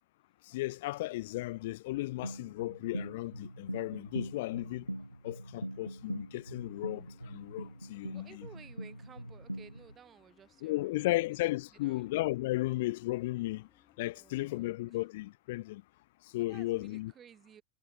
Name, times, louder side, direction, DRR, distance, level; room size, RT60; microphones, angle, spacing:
voice 1, 0.5-4.9 5.2-8.5 10.6-13.7 14.0-15.8 16.3-17.1, left 18 dB, 50° left, 0.3 m, -35 dB
sound 1, 2.2-9.9, right 1 dB, 90° right, 0.4 m, -42 dB
sound 2, 6.4-14.6, left 8 dB, 25° left, 5.9 m, -69 dB
voice 2, 8.0-11.4 11.7-12.1 14.1-15.0 16.3-17.6, right 9 dB, 25° right, 5.0 m, -56 dB
figure-of-eight pair, 90°, 0 cm